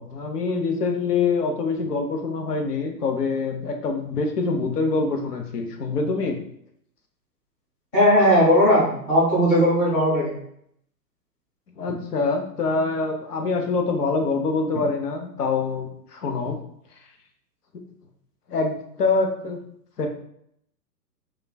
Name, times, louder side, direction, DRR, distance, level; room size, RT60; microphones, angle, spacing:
voice 1, 0.0-6.4 11.8-16.6 17.7-17.8 18.5-19.6 20.0-20.1, left 4 dB, 70° left, 4 dB, 0.7 m, -25 dB
voice 2, 7.9-10.4, equal, 15° left, -11 dB, 1.3 m, -18 dB
3.2 x 2.3 x 2.2 m, 0.72 s
figure-of-eight pair, 120°, 49 cm